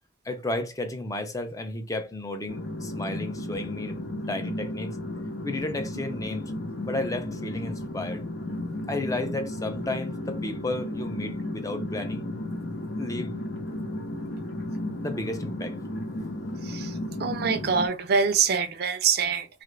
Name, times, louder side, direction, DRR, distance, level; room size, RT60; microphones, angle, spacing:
voice 1, 0.2-4.0 4.3-5.0 5.4-6.5 6.9-8.2 8.9-12.2 12.9-13.4 15.0-15.8, left 2 dB, 20° left, 0.5 m, -33 dB
sound 1, 2.5-17.9, left 1 dB, 75° left, 0.9 m, -34 dB
voice 2, 17.2-19.6, right 6 dB, 60° right, 0.5 m, -25 dB
3.0 x 2.4 x 3.2 m
head